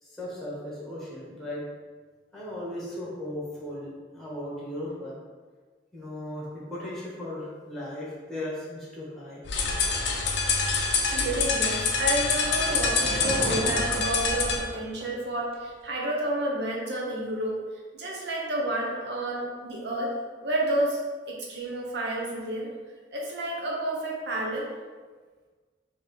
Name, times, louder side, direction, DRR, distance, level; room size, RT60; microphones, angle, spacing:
voice 1, 0.0-1.6 2.3-5.1 5.9-9.4, left 1 dB, ahead, -7 dB, 1.2 m, -37 dB
sound 1, 9.5-14.6, left 4 dB, 75° left, 0.5 m, -26 dB
voice 2, 10.9-17.6 17.9-20.1 20.4-21.0 21.3-22.7 23.1-24.7, right 1 dB, 65° right, -3 dB, 0.8 m, -30 dB
sound 2, 11.5-15.2 15.5-15.6, right 1 dB, 35° right, 0.5 m, -37 dB
3.3 x 2.9 x 4.2 m, 1.4 s
head